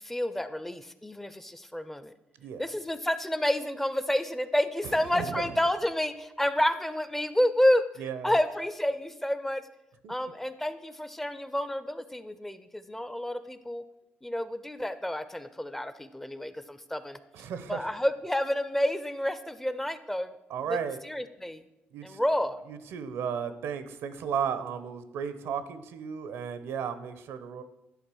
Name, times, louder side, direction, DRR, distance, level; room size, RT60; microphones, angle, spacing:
voice 1, 0.0-2.1 2.6-7.8 8.2-9.6 10.1-13.8 14.2-17.2 17.7-20.3 20.7-20.8 21.0-21.6 22.0-22.6, left 1 dB, 5° left, 12 dB, 0.4 m, -29 dB
voice 2, 4.8-5.4 8.0-8.4 10.0-10.1 17.3-17.9 20.5-21.0 21.9-22.2 22.7-27.6, right 7 dB, 85° right, 12 dB, 0.7 m, -34 dB
10.5 x 3.7 x 6.1 m, 0.93 s
cardioid pair, 125°, 4 cm